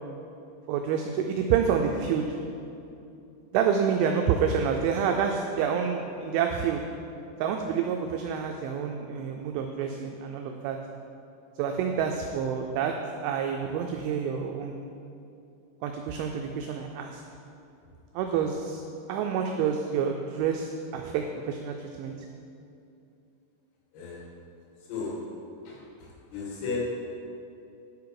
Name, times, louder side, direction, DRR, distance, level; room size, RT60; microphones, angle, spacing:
voice 1, 0.7-2.4 3.5-6.8 7.4-10.8 11.6-12.9 13.2-14.8 15.8-17.2 18.1-18.8 19.1-22.1, right 7 dB, 90° right, 3 dB, 2.7 m, -28 dB
voice 2, 26.3-26.8, left 5 dB, 80° left, -5 dB, 4.7 m, -34 dB
10.5 x 7.1 x 4.7 m, 2.7 s
omnidirectional pair, 6.0 m